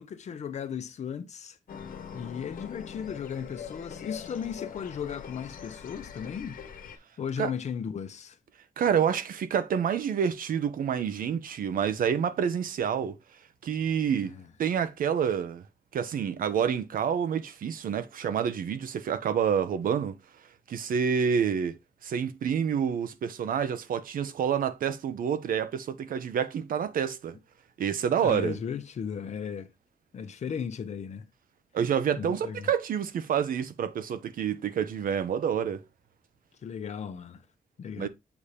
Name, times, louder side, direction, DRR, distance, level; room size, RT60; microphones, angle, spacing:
voice 1, 0.0-1.6 2.1-6.6 7.2-8.4 14.2-14.4 28.2-29.7 30.1-31.3 32.2-32.7 36.6-37.4 37.8-38.1, left 7 dB, 55° left, 0.8 m, -36 dB
sound 1, 1.7-7.0, left 7 dB, 70° left, 1.2 m, -43 dB
voice 2, 8.8-13.1 13.6-14.3 14.6-15.6 15.9-20.2 20.7-21.7 22.0-27.4 27.8-28.5 31.7-35.8 38.0-38.1, right 7 dB, 75° right, 0.7 m, -28 dB
7.1 x 2.8 x 4.8 m
wide cardioid pair, 170°, 15 cm